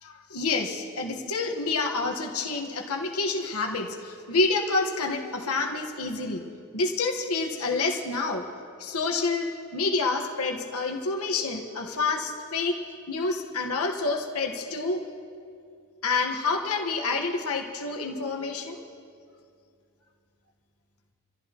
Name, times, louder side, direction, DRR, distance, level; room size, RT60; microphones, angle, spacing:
voice 1, 0.0-6.4 6.7-8.4 8.8-9.5 9.7-12.8 13.1-15.0 16.0-18.8, left 3 dB, 75° left, 1 dB, 1.4 m, -28 dB
26.0 x 15.0 x 3.0 m, 2.3 s
head